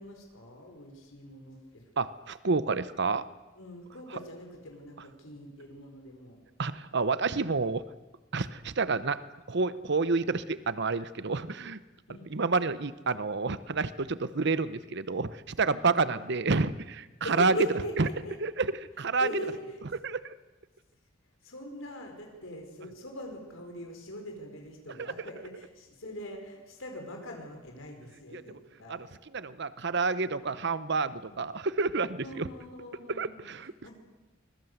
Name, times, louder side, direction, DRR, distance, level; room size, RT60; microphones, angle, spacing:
voice 1, 0.0-1.8 3.6-6.4 12.1-12.3 15.6-15.8 17.2-18.4 19.2-19.8 21.4-29.1 31.3-31.4 32.2-33.5 33.8-33.9, left 1 dB, 75° left, 2 dB, 4.9 m, -41 dB
voice 2, 2.0-3.2 6.6-7.8 8.3-9.2 9.5-11.8 12.3-17.5 18.0-18.1 18.4-19.3 20.0-20.3 25.0-25.1 28.3-28.4 28.9-29.1 29.3-32.5 33.1-33.7, right 4 dB, 55° right, 15 dB, 0.9 m, -29 dB
25.0 x 21.5 x 8.0 m, 1.1 s
head